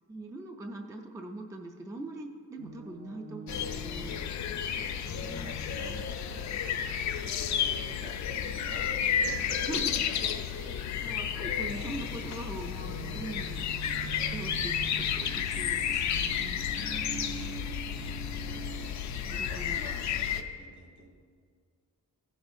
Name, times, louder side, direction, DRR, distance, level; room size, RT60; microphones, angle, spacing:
voice 1, 0.1-5.9 9.7-9.8 10.6-10.7 11.0-16.8 19.3-19.8, right 2 dB, 10° right, 2 dB, 0.3 m, -42 dB
sound 1, 2.6-6.8 9.8-19.1, right 5 dB, 40° right, 0.9 m, -46 dB
sound 2, 3.5-20.4, left 8 dB, 65° left, 0.5 m, -32 dB
voice 2, 4.7-6.5 7.0-11.0 16.8-17.8 19.1-21.1, equal, 65° right, -1 dB, 1.8 m, -48 dB
15.0 x 6.2 x 2.6 m, 2.1 s
wide cardioid pair, 170°, 31 cm